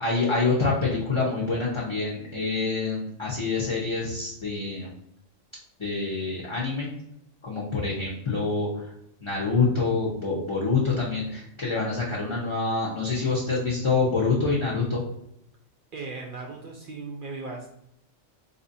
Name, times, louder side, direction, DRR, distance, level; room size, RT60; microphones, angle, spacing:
voice 1, 0.0-4.9 5.8-6.9 7.4-8.9 9.2-15.0, left 4 dB, 35° left, -6 dB, 0.5 m, -26 dB
voice 2, 15.9-17.7, right 3 dB, 60° right, 0 dB, 0.5 m, -37 dB
4.2 x 2.7 x 2.6 m, 0.78 s
omnidirectional pair, 1.3 m